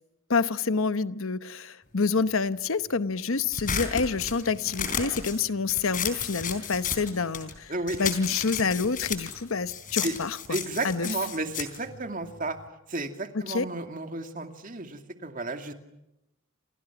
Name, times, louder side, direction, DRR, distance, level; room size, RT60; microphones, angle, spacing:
voice 1, 0.3-7.7 8.0-10.6 10.8-11.1 13.3-13.7, left 4 dB, 75° left, 1.0 m, -27 dB
sound 1, 3.5-7.6 7.9-12.7, left 7 dB, 40° left, 3.9 m, -33 dB
voice 2, 10.5-12.6 12.9-15.7, right 2 dB, 40° right, 2.4 m, -32 dB
28.5 x 28.0 x 6.1 m
head